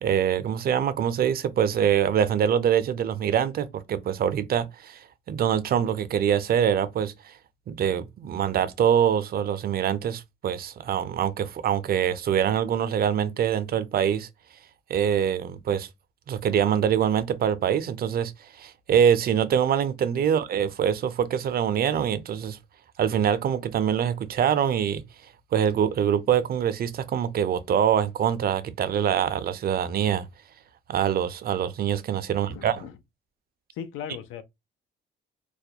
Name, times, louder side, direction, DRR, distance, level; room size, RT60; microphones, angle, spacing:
voice 1, 0.0-7.3 7.7-14.3 14.9-15.9 16.3-22.6 23.0-25.0 25.5-30.3 30.9-32.8, right 9 dB, 50° right, 0.4 m, -24 dB
voice 2, 32.3-32.9 33.7-34.4, left 8 dB, 90° left, 0.4 m, -38 dB
2.3 x 2.0 x 2.8 m
cardioid pair, 90°, 20 cm